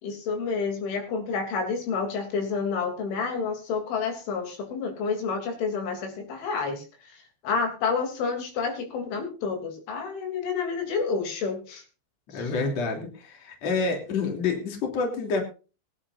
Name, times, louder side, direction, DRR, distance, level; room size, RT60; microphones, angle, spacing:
voice 1, 0.0-6.8 7.1-11.8 12.3-12.5, left 5 dB, 85° left, 4 dB, 5.6 m, -29 dB
voice 2, 12.3-15.4, left 4 dB, 40° left, 2 dB, 3.8 m, -28 dB
23.0 x 10.0 x 2.6 m, 0.34 s
omnidirectional pair, 5.3 m